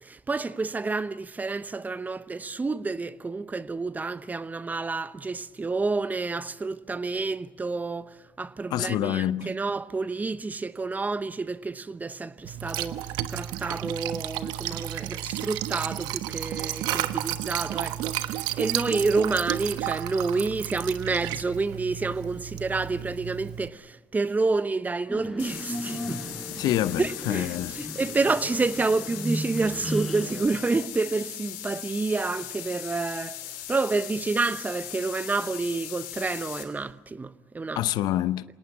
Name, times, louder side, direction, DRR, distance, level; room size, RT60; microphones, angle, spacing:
voice 1, 0.0-13.0 13.3-26.3 27.0-27.6 27.9-33.4 33.7-37.8, right 3 dB, 20° right, 1.0 m, -29 dB
voice 2, 8.7-9.5 26.6-27.8 37.7-38.4, left 13 dB, 65° left, 0.7 m, -26 dB
Liquid, 12.4-23.7, right 12 dB, 70° right, 1.1 m, -32 dB
sound 1, 25.1-30.4, equal, 5° right, 5.5 m, -35 dB
sound 2, 25.4-36.6, left 13 dB, 85° left, 3.2 m, -39 dB
27.0 x 18.0 x 8.6 m
hypercardioid pair, 70°, 8 cm